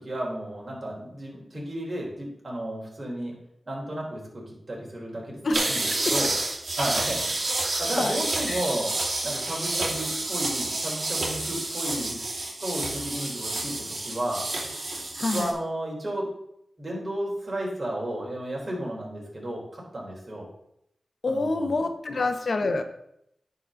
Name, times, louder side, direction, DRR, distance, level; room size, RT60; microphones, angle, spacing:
voice 1, 0.0-3.3 3.7-6.3 6.8-7.2 7.8-12.2 12.6-14.5 15.3-16.3 16.8-20.5 21.3-21.7 22.1-22.2, right 1 dB, 45° right, -2 dB, 3.7 m, -33 dB
voice 2, 5.4-6.1 7.7-8.2 8.5-8.6 15.2-15.5 21.2-22.8, left 3 dB, 65° left, 7 dB, 1.0 m, -28 dB
sound 1, 5.5-15.5, right 2 dB, 65° right, 2.6 m, -29 dB
9.7 x 4.2 x 6.4 m, 0.77 s
cardioid pair, 60°, 0 cm